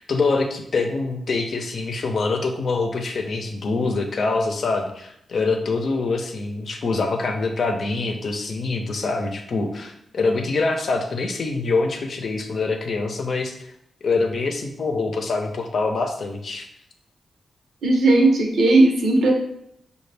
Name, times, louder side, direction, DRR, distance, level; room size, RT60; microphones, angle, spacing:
voice 1, 0.0-13.7 14.0-16.7, left 3 dB, 65° left, 4 dB, 0.7 m, -25 dB
voice 2, 17.8-19.3, right 2 dB, 80° right, 1 dB, 0.9 m, -16 dB
5.7 x 2.4 x 3.3 m, 0.74 s
cardioid pair, 75°, 0 cm